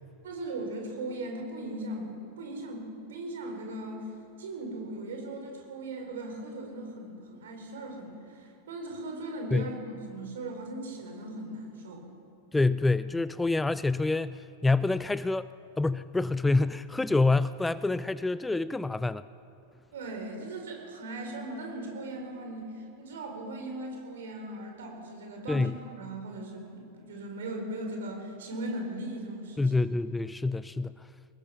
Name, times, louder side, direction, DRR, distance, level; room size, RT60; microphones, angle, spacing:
voice 1, 0.2-4.1 4.4-12.0 19.9-29.7, right 1 dB, 60° right, 2 dB, 4.7 m, -38 dB
voice 2, 12.5-15.5 15.8-19.2 25.5-25.8 29.6-31.1, left 3 dB, 10° left, 16 dB, 0.4 m, -27 dB
23.5 x 20.0 x 5.9 m, 2.8 s
figure-of-eight pair, 90°, 0 cm